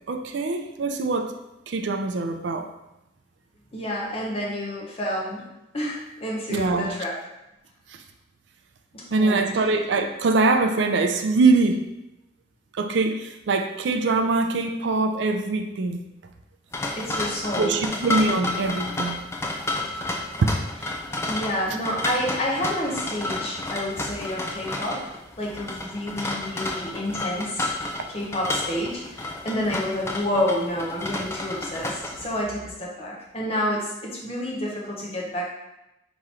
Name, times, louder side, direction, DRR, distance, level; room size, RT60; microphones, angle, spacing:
voice 1, 0.1-1.3 1.7-2.7 6.5-6.9 9.1-11.8 12.7-16.0 17.6-19.2, right 3 dB, 70° right, 6 dB, 0.4 m, -23 dB
voice 2, 3.7-5.4 5.7-7.1 8.9-9.5 17.0-17.8 19.7-20.0 21.3-25.0 25.4-27.7 28.1-35.4, left 1 dB, 30° left, -3 dB, 0.9 m, -29 dB
sound 1, 16.7-32.4, left 2 dB, 15° left, 0.4 m, -31 dB
3.7 x 3.0 x 4.2 m, 0.92 s
head